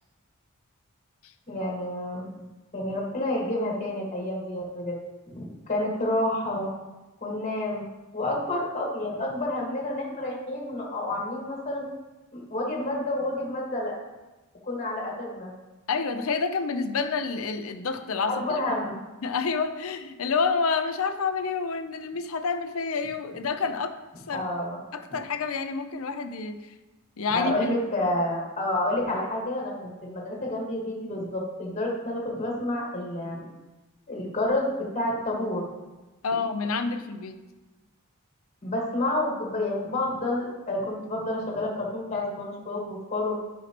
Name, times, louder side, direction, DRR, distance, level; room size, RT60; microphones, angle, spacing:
voice 1, 1.5-2.3 2.7-5.0 5.3-6.7 7.2-7.9 8.1-11.8 12.3-13.9 14.6-15.5 18.3-19.0 24.3-24.8 25.1-25.2 27.3-33.5 34.1-34.7 34.9-35.6 38.6-43.4, left 1 dB, 35° left, -2 dB, 1.7 m, -29 dB
voice 2, 15.9-18.6 19.2-23.9 24.3-24.5 24.9-26.6 27.2-27.8 36.2-37.4, left 4 dB, 70° left, 8 dB, 0.6 m, -28 dB
10.0 x 5.5 x 3.0 m, 1.1 s
head